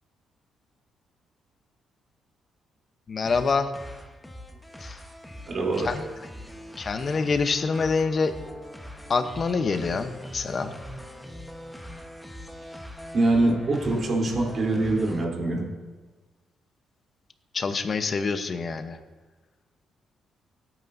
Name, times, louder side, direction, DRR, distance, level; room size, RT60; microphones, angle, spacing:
voice 1, 3.1-3.7 4.8-5.0 5.8-6.0 6.8-8.3 9.1-10.7 17.5-19.0, left 4 dB, 40° left, 9 dB, 0.9 m, -26 dB
sound 1, 3.2-15.2, equal, 5° left, 1.2 m, -41 dB
voice 2, 5.5-5.9 13.1-15.6, right 2 dB, 45° right, -2 dB, 3.5 m, -24 dB
17.5 x 9.1 x 2.7 m, 1.3 s
cardioid pair, 90°, 0 cm